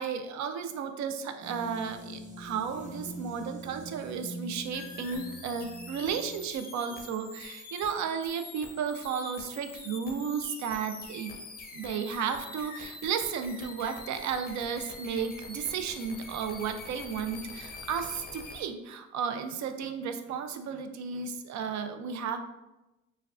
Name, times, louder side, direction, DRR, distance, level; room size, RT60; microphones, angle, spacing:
voice 1, 0.0-11.4 11.7-22.4, right 6 dB, 65° right, 8 dB, 0.5 m, -33 dB
sound 1, 1.4-6.6, right 2 dB, 25° right, 0.9 m, -44 dB
sound 2, 4.7-18.6, left 3 dB, 30° left, 0.6 m, -45 dB
4.5 x 2.3 x 2.4 m, 0.99 s
cardioid pair, 90°, 30 cm